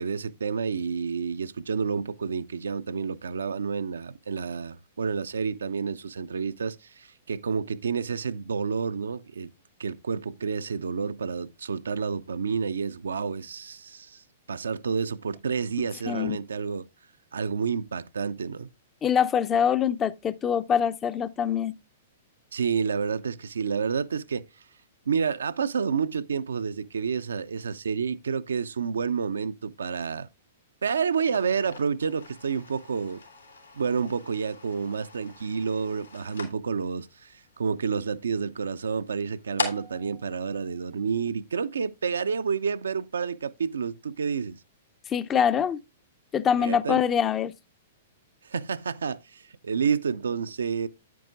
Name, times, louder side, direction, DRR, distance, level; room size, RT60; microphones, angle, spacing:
voice 1, 0.0-9.5 9.8-14.2 14.5-16.9 17.3-18.7 22.5-24.5 25.1-30.3 30.8-33.2 33.7-44.6 46.6-47.0 48.4-50.9, right 6 dB, 65° right, 0.5 m, -29 dB
voice 2, 16.1-16.4 19.0-21.7 45.1-45.8 46.3-47.5, left 8 dB, 20° left, 0.5 m, -24 dB
sound 1, 31.1-41.5, left 3 dB, 80° left, 2.8 m, -41 dB
9.3 x 9.3 x 2.5 m
figure-of-eight pair, 105°, 0 cm